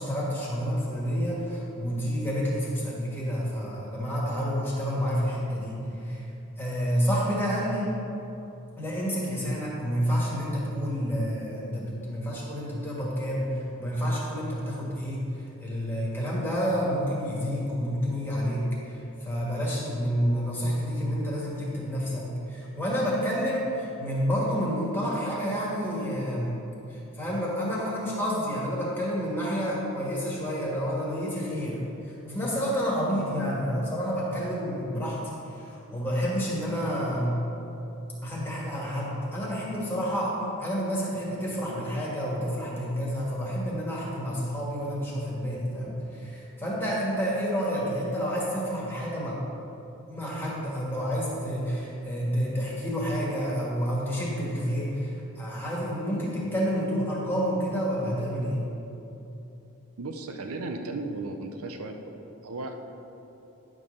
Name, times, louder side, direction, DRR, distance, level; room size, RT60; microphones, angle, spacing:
voice 1, 0.0-6.2 6.6-7.9 8.8-15.3 15.6-26.5 26.9-31.8 32.0-37.4 38.2-49.4 50.1-58.6, equal, 10° left, -6 dB, 1.6 m, -29 dB
voice 2, 60.0-62.8, right 2 dB, 80° right, 4 dB, 0.6 m, -35 dB
10.5 x 3.7 x 6.4 m, 3.0 s
head